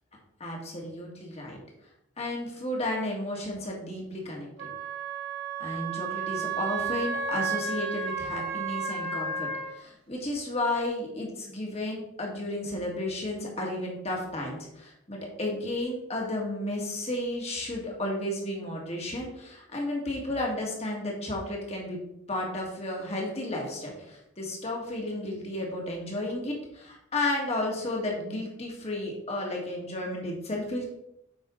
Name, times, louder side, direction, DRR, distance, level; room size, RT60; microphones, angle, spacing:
voice 1, 0.4-1.6 2.2-4.7 5.6-22.0 22.3-30.9, left 1 dB, 30° left, -1 dB, 1.8 m, -33 dB
Wind instrument woodwind instrument, 4.6-9.7, right 5 dB, 55° right, 2.3 m, -32 dB
8.1 x 5.6 x 3.8 m, 0.81 s
head